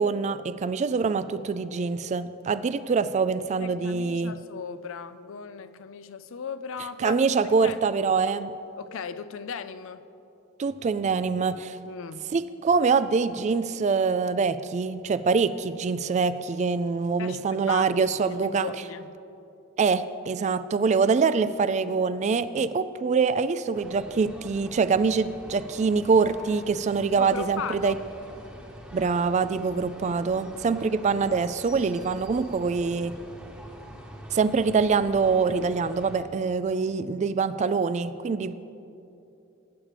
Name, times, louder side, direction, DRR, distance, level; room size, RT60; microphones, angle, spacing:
voice 1, 0.0-4.3 7.0-8.5 10.6-11.8 12.3-18.7 19.8-28.0 28.9-33.1 34.3-38.5, right 5 dB, 35° right, 0.3 m, -24 dB
voice 2, 3.6-7.2 7.6-7.8 8.8-10.0 11.9-12.2 17.2-17.9 18.2-19.1 27.2-28.0, left 6 dB, 65° left, 0.5 m, -37 dB
sound 1, 23.7-36.2, equal, 5° right, 1.1 m, -45 dB
19.5 x 8.7 x 3.4 m
head